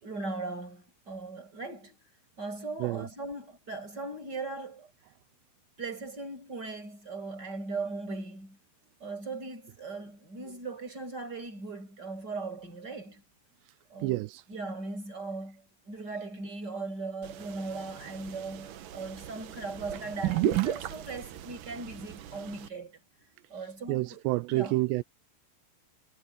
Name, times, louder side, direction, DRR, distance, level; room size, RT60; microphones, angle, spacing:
voice 1, 0.0-2.0 2.4-4.9 5.8-8.6 9.0-13.2 13.9-23.0 23.5-24.2 24.5-24.8, right 3 dB, 25° right, 7.0 m, -39 dB
voice 2, 14.0-14.4 23.9-25.0, right 20 dB, 90° right, 2.8 m, -29 dB
sound 1, 17.2-22.7, right 13 dB, 65° right, 2.4 m, -34 dB
omnidirectional pair, 4.9 m